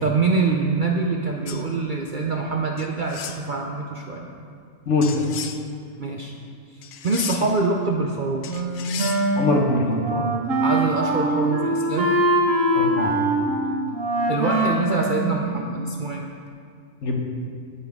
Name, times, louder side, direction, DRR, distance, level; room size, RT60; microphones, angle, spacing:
voice 1, 0.0-4.3 6.0-6.3 7.0-8.4 10.6-12.1 14.3-16.2, right 3 dB, 50° right, 0 dB, 0.6 m, -24 dB
sound 1, 1.5-1.6 2.8-3.4 5.0-5.6 6.8-7.6 8.4-9.2, left 8 dB, 75° left, 1.0 m, -34 dB
voice 2, 4.9-5.2 9.4-10.3 12.7-13.2 17.0-17.2, left 2 dB, 55° left, 1 dB, 1.3 m, -22 dB
Wind instrument woodwind instrument, 8.5-15.9, right 1 dB, 70° right, 1.4 m, -23 dB
17.0 x 5.6 x 3.5 m, 2.2 s
omnidirectional pair, 1.4 m